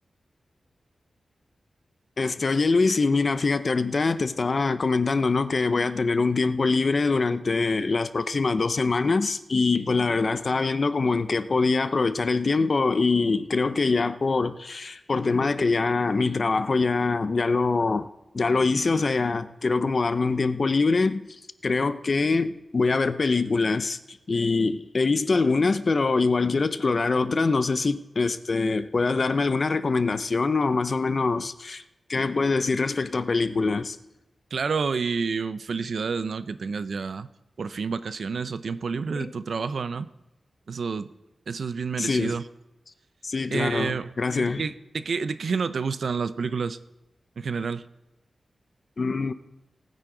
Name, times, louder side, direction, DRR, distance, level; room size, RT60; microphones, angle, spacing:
voice 1, 2.2-18.1 18.3-21.3 21.6-24.0 24.3-31.8 32.1-34.0 39.2-39.3 42.0-42.4 43.2-44.6 49.0-49.3, left 3 dB, 40° left, 0.5 m, -24 dB
voice 2, 34.5-37.3 37.6-40.1 40.7-41.1 41.5-42.5 43.5-46.8 47.4-47.8, right 5 dB, 65° right, 0.5 m, -29 dB
19.0 x 9.3 x 3.9 m
wide cardioid pair, 170°, 0 cm